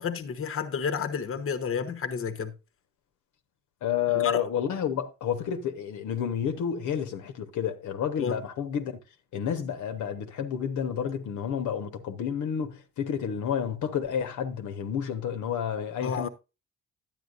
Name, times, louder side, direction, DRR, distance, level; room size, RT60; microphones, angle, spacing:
voice 1, 0.0-2.5 4.1-4.5 8.2-8.4 16.0-16.3, left 6 dB, 45° left, 1.1 m, -31 dB
voice 2, 3.8-9.0 9.3-16.3, left 8 dB, 75° left, 1.2 m, -30 dB
10.5 x 9.1 x 2.5 m
cardioid pair, 90°, 30 cm